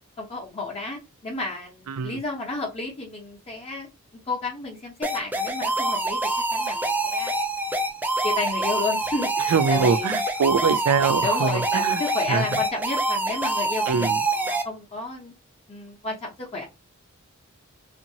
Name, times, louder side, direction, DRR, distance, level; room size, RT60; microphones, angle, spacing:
voice 1, 0.2-3.9 4.3-6.2 6.5-7.3 8.2-10.1 11.2-15.3 15.7-16.6, left 3 dB, 30° left, 0.8 m, -32 dB
voice 2, 1.9-2.2 9.5-12.0 12.3-12.5 13.9-14.2, right 5 dB, 90° right, 0.4 m, -23 dB
sound 1, 5.0-14.6, right 2 dB, 10° right, 0.3 m, -26 dB
2.8 x 2.5 x 2.7 m
head